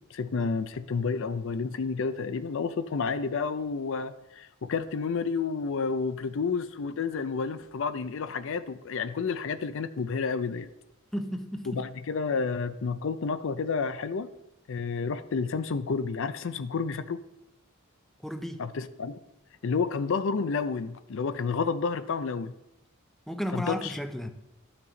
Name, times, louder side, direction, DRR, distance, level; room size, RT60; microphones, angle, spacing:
voice 1, 0.1-10.7 11.7-14.3 14.7-17.2 18.6-19.2 19.6-22.5 23.5-23.9, left 5 dB, 60° left, 12 dB, 0.5 m, -30 dB
voice 2, 11.1-11.8 18.2-18.6 23.3-24.3, equal, ahead, 7 dB, 0.5 m, -34 dB
12.0 x 5.9 x 4.0 m, 0.89 s
head